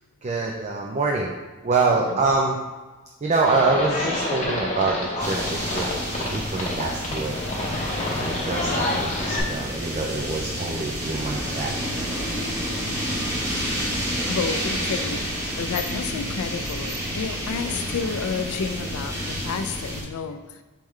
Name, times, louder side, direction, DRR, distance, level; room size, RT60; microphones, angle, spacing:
voice 1, 0.2-1.3 1.6-2.6 3.2-5.9 6.2-7.4 8.2-11.7, right 3 dB, 30° right, -1 dB, 0.4 m, -25 dB
Livestock farm animals working animals, 3.4-9.4, left 2 dB, 35° left, 0.8 m, -28 dB
sound 1, 5.2-20.0, equal, 15° right, 1.0 m, -29 dB
voice 2, 13.5-14.0 14.3-20.6, left 5 dB, 80° left, 9 dB, 0.4 m, -31 dB
4.5 x 3.6 x 3.1 m, 1.3 s
head